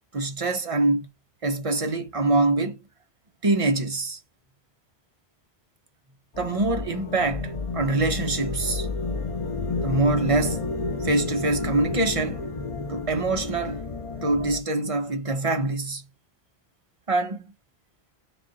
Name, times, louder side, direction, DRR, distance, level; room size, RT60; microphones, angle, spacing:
voice 1, 0.1-1.1 1.4-2.8 3.4-4.2 6.4-8.9 9.8-10.6 11.0-12.4 12.9-13.8 14.2-16.0 17.1-17.5, right 2 dB, 35° right, 0.7 m, -24 dB
sound 1, 6.3-14.6, left 3 dB, 35° left, 0.7 m, -31 dB
3.8 x 2.8 x 3.8 m
omnidirectional pair, 1.1 m